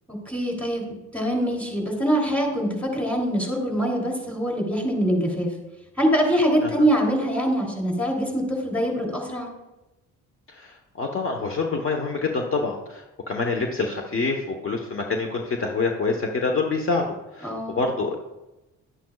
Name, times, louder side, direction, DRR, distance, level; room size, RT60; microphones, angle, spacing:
voice 1, 0.1-5.5 6.0-9.5 17.4-17.8, equal, 5° left, 0 dB, 3.2 m, -24 dB
voice 2, 10.5-17.1 17.3-18.1, left 4 dB, 45° left, 2 dB, 1.2 m, -26 dB
11.0 x 10.5 x 2.4 m, 0.99 s
cardioid pair, 90°, 30 cm